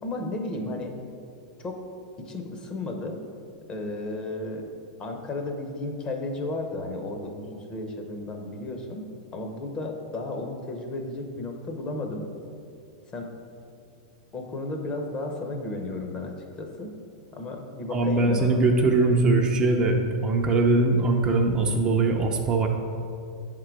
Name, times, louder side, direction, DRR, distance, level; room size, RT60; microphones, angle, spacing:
voice 1, 0.0-0.9 1.6-1.8 2.2-3.2 3.7-4.7 5.0-12.2 13.1-13.3 14.3-16.9 17.3-18.6, left 2 dB, 30° left, 3 dB, 0.8 m, -33 dB
voice 2, 17.9-20.0 20.2-22.7, right 3 dB, 25° right, 1 dB, 0.6 m, -21 dB
7.4 x 3.8 x 4.6 m, 2.4 s
hypercardioid pair, 125°, 3 cm